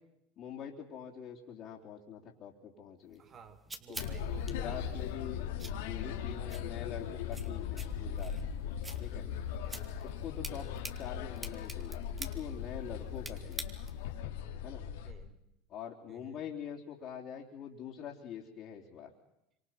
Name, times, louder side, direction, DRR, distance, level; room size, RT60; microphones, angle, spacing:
voice 1, 0.4-3.2 3.9-4.1 4.5-5.4 5.7-8.3 9.0-9.3 10.0-10.7 11.0-13.7 14.6-14.8 15.7-19.1, left 8 dB, 50° left, -5 dB, 3.6 m, -44 dB
sound 1, 3.1-14.1, right 2 dB, 15° right, 2.5 m, -49 dB
voice 2, 3.2-5.0 9.2-10.0 10.5-10.9 13.3-13.5 15.0-15.4 16.1-16.4, right 6 dB, 40° right, 8 dB, 3.6 m, -55 dB
sound 2, 4.0-15.1, left 8 dB, 75° left, 2.4 m, -39 dB
27.5 x 25.5 x 6.0 m, 0.82 s
hypercardioid pair, 85°, 0 cm